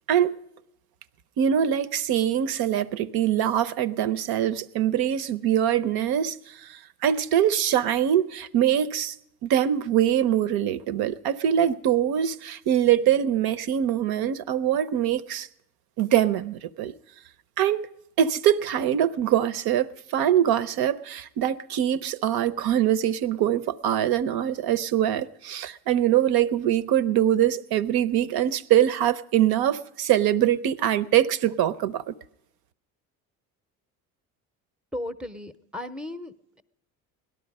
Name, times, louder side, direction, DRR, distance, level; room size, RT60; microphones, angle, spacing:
voice 1, 1.4-9.1 9.4-15.5 16.0-16.9 17.6-17.9 18.2-32.1, right 10 dB, 60° right, 0.7 m, -23 dB
voice 2, 34.9-36.6, left 1 dB, ahead, 0.7 m, -36 dB
17.5 x 12.0 x 5.3 m
hypercardioid pair, 65°, 42 cm